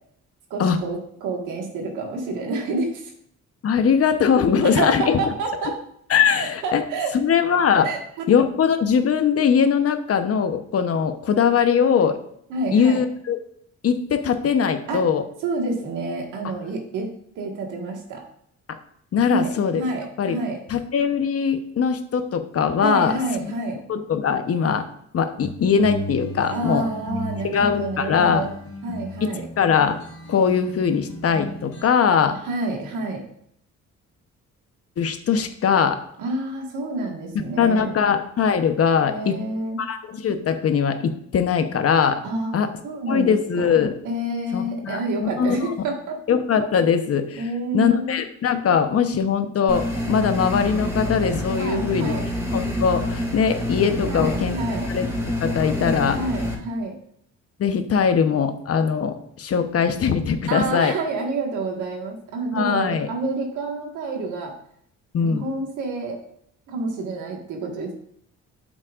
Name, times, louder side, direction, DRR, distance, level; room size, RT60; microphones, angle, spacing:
voice 1, 0.5-3.1 4.6-5.8 6.3-7.1 7.8-8.0 12.5-13.0 14.9-15.1 15.4-17.1 17.4-18.2 19.2-20.6 22.8-23.8 26.5-28.5 28.8-29.5 32.3-33.2 36.2-38.0 38.9-39.8 42.2-42.5 42.8-43.7 44.1-46.2 47.4-48.2 51.6-52.3 54.1-54.9 56.1-57.0 60.5-64.5 65.2-66.2 66.7-67.9, right 2 dB, 85° right, 2 dB, 1.7 m, -28 dB
voice 2, 3.6-5.2 6.1-6.8 7.1-7.9 8.3-12.2 12.7-13.4 13.8-15.2 18.7-18.8 19.1-19.8 20.2-20.4 20.7-23.2 23.9-24.8 25.1-26.9 27.4-28.5 29.6-30.0 30.3-32.4 35.0-36.0 37.6-39.4 39.8-42.2 42.5-42.7 43.1-44.0 44.5-45.6 46.3-47.4 47.7-52.1 52.5-54.6 54.9-55.1 55.4-56.2 57.6-60.9 62.5-63.1 65.1-65.5, left 6 dB, 50° left, 8 dB, 0.9 m, -21 dB
sound 1, 25.4-31.8, left 2 dB, 70° left, 2.5 m, -35 dB
sound 2, 49.7-56.5, left 1 dB, 5° right, 3.2 m, -27 dB
8.6 x 7.3 x 2.5 m, 0.69 s
cardioid pair, 90°, 30 cm